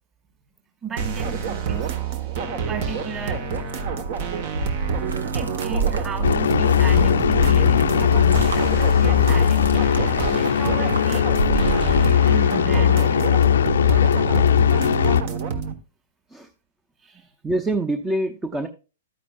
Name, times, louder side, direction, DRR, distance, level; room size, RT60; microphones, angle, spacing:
voice 1, 0.8-1.9 2.7-3.4 5.3-13.2 17.0-17.3, right 7 dB, 25° right, 3 dB, 5.0 m, -35 dB
sound 1, 1.0-15.7, right 6 dB, 45° right, 1.3 m, -28 dB
sound 2, 2.8-12.8 13.1-14.0, right 4 dB, 75° right, 1.4 m, -30 dB
sound 3, 6.2-15.2, left 9 dB, 65° left, 0.5 m, -19 dB
voice 2, 17.4-18.7, right 1 dB, 10° right, 9 dB, 0.8 m, -25 dB
12.5 x 9.4 x 2.4 m, 0.34 s
figure-of-eight pair, 110°, 0 cm